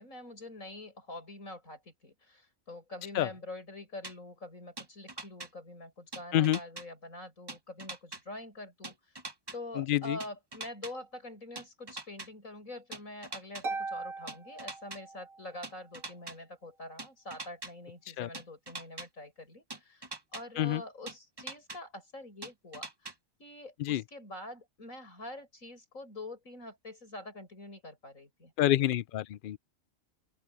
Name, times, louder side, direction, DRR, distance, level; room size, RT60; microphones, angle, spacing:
voice 1, 0.0-9.0 9.5-23.1 23.4-28.5, left 2 dB, 85° left, 8.4 m, -45 dB
sound 1, 4.0-4.1 4.8-5.5 6.1-6.8 7.5-8.2 8.8-9.6 10.2-10.9 11.5-12.3 12.9-13.6 14.3-15.0 15.6-16.3 17.0-17.7 18.3-19.1 19.7-20.4 21.1-21.8 22.4-23.1, right 2 dB, 20° right, 1.0 m, -42 dB
Harp, 13.6-15.5, right 3 dB, 80° right, 2.6 m, -39 dB
voice 2, 28.6-29.6, left 13 dB, 65° left, 0.5 m, -27 dB
open air
omnidirectional pair, 1.4 m